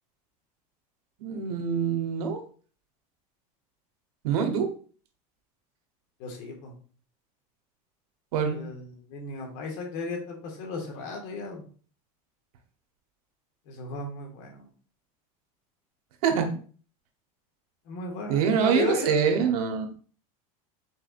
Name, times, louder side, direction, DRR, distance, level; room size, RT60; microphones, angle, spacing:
voice 1, 1.2-2.4 4.2-4.7 8.3-8.6 16.2-16.5 18.3-19.9, right 7 dB, 80° right, 5 dB, 1.0 m, -25 dB
voice 2, 6.2-6.7 8.5-11.6 13.7-14.7 17.9-19.4, left 4 dB, 65° left, 2 dB, 1.7 m, -35 dB
4.7 x 4.2 x 2.5 m, 0.42 s
supercardioid pair, 115°, 19 cm